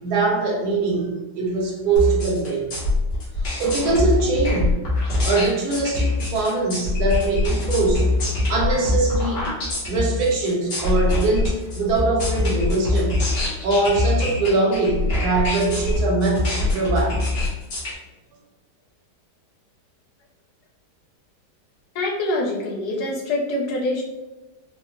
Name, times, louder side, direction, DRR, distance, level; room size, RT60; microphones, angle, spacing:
voice 1, 0.0-2.7 3.6-4.8 5.2-8.1 8.5-9.4 9.9-13.2 13.6-17.2, right 3 dB, 70° right, 0 dB, 1.2 m, -22 dB
sound 1, 2.0-17.9, left 2 dB, 90° left, 1.8 m, -23 dB
voice 2, 21.9-24.0, left 2 dB, 70° left, -2 dB, 1.3 m, -25 dB
4.0 x 2.1 x 3.0 m, 1.1 s
omnidirectional pair, 1.8 m